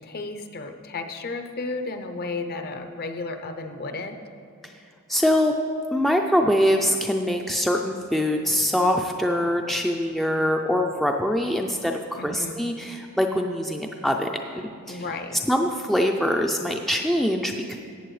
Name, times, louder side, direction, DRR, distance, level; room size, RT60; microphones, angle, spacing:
voice 1, 0.0-4.2 12.2-12.7 14.9-15.4, left 3 dB, 45° left, 7 dB, 0.6 m, -33 dB
voice 2, 5.1-5.5 5.9-14.3 14.5-15.0 15.5-17.8, equal, ahead, 2 dB, 0.3 m, -23 dB
14.5 x 8.5 x 3.2 m, 2.3 s
head